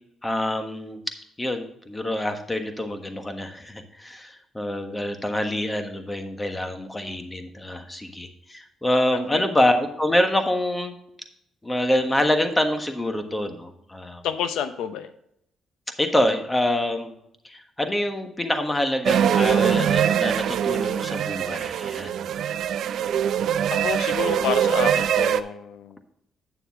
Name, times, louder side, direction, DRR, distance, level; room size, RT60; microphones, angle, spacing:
voice 1, 0.2-1.0 1.4-10.9 11.6-14.2 16.0-17.1 17.4-22.1, left 1 dB, 15° left, 6 dB, 1.4 m, -26 dB
voice 2, 14.2-15.1 23.7-25.9, left 8 dB, 85° left, 10 dB, 0.7 m, -29 dB
sound 1, 19.1-25.4, right 9 dB, 70° right, 0.5 m, -23 dB
9.2 x 6.9 x 3.6 m, 0.74 s
cardioid pair, 90°, 0 cm